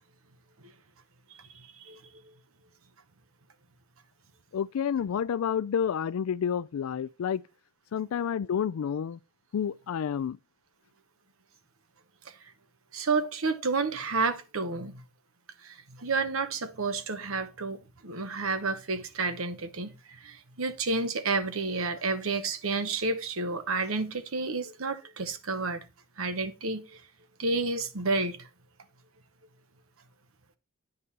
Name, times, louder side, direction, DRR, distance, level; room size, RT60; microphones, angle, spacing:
voice 1, 1.5-2.0 12.9-15.0 15.6-25.8 26.2-27.0 27.4-28.5, right 3 dB, 70° right, 1.0 m, -30 dB
voice 2, 4.5-7.4 7.9-9.2 9.5-10.4, left 8 dB, 80° left, 0.4 m, -29 dB
9.8 x 5.3 x 4.2 m
head